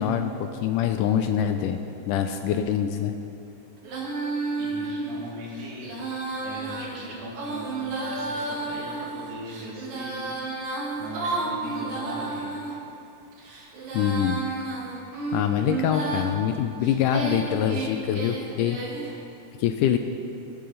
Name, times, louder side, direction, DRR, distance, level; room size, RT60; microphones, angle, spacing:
voice 1, 0.0-1.8 2.1-3.2 13.9-14.4 15.3-18.8 19.6-20.0, left 9 dB, 80° left, 7 dB, 2.0 m, -24 dB
Female singing, 3.8-12.7 13.3-16.3 16.8-19.1, right 3 dB, 50° right, 2.1 m, -32 dB
voice 2, 4.6-5.9 6.4-10.4 11.0-12.5, right 1 dB, 80° right, -4 dB, 4.1 m, -39 dB
22.0 x 8.8 x 3.9 m, 2.7 s
omnidirectional pair, 4.0 m